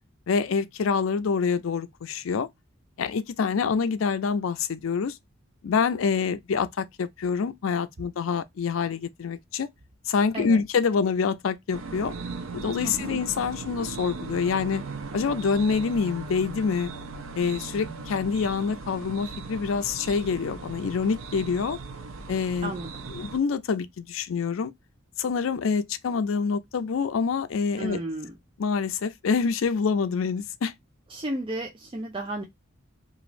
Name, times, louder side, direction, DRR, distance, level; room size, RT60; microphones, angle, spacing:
voice 1, 0.3-2.5 3.0-5.2 5.6-9.7 10.1-12.1 12.5-14.8 15.1-16.9 17.4-21.8 22.3-22.7 23.1-24.7 25.2-28.0 28.6-30.7, left 5 dB, 75° left, 0.4 m, -26 dB
sound 1, 11.7-23.4, right 3 dB, 80° right, 0.5 m, -38 dB
voice 2, 12.8-13.2 22.6-23.1 27.8-28.4 31.1-32.4, right 1 dB, 25° right, 0.5 m, -33 dB
3.1 x 2.4 x 2.4 m
head